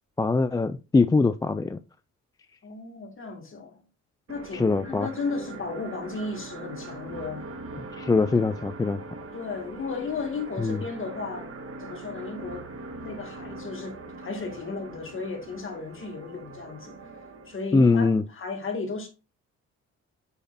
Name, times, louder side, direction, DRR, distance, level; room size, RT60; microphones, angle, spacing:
voice 1, 0.2-1.8 4.5-5.1 7.9-9.0 10.6-10.8 17.7-18.2, left 3 dB, 15° left, 0.3 m, -22 dB
voice 2, 2.6-3.8 4.3-7.5 9.3-11.5 11.8-12.7 13.0-17.1 17.5-19.1, left 4 dB, 45° left, 2.1 m, -34 dB
sound 1, 4.3-17.6, right 2 dB, 50° right, 1.5 m, -41 dB
6.8 x 5.8 x 2.6 m
cardioid pair, 90°, 30 cm